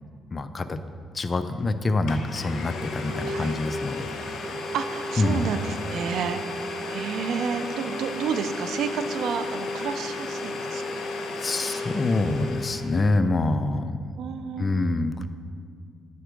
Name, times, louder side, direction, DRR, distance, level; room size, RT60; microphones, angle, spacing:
voice 1, 0.3-0.8 1.1-4.5 5.2-5.5 11.3-14.0 14.6-15.3, left 2 dB, 35° left, 10 dB, 0.4 m, -26 dB
Domestic sounds home sounds, 1.6-1.7 2.1-13.1, left 2 dB, 70° left, 0.9 m, -33 dB
voice 2, 3.2-3.6 4.7-11.9 14.2-15.3, right 6 dB, 75° right, 10 dB, 0.4 m, -31 dB
9.4 x 4.5 x 5.1 m, 2.2 s
cardioid pair, 90°, 0 cm